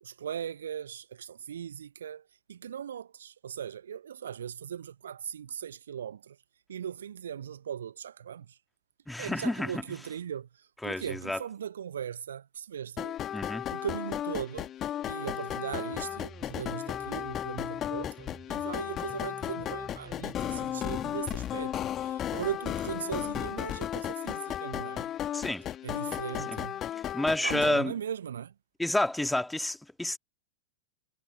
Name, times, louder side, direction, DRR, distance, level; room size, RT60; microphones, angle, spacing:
voice 1, 0.0-6.4 6.7-8.6 9.2-13.2 13.7-14.7 15.1-25.1 25.8-26.8 27.4-28.5, right 9 dB, 65° right, 1.1 m, -39 dB
voice 2, 9.1-9.8 10.8-11.4 13.3-13.6 25.3-25.7 27.1-27.9 28.8-30.2, left 1 dB, 5° left, 2.3 m, -29 dB
sound 1, 13.0-27.7, left 11 dB, 30° left, 1.8 m, -35 dB
sound 2, 15.9-21.2, right 4 dB, 15° right, 4.7 m, -50 dB
figure-of-eight pair, 90°, 0 cm